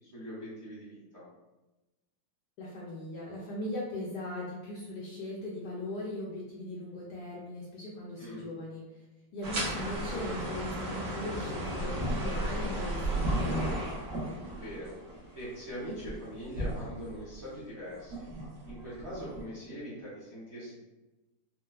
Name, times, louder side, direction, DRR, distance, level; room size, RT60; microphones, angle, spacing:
voice 1, 0.0-1.2 8.2-8.4 14.5-15.0 15.3-18.2 18.7-20.8, equal, 20° right, -9 dB, 0.8 m, -42 dB
voice 2, 2.6-9.1 9.3-13.8, left 1 dB, 70° left, -5 dB, 1.0 m, -39 dB
sound 1, 9.4-17.4 17.9-19.4, right 1 dB, 55° right, 0.9 m, -34 dB
4.0 x 2.1 x 2.3 m, 1.1 s
omnidirectional pair, 2.2 m